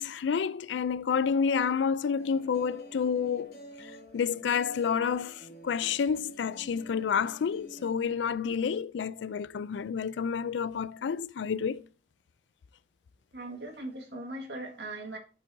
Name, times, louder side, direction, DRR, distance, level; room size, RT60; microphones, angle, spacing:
voice 1, 0.0-3.5 4.1-11.8, left 6 dB, 85° left, 0.4 m, -29 dB
sound 1, 2.2-7.9, equal, 60° left, 2.2 m, -50 dB
voice 2, 13.3-15.2, right 2 dB, 75° right, 1.8 m, -39 dB
13.5 x 5.5 x 2.6 m
head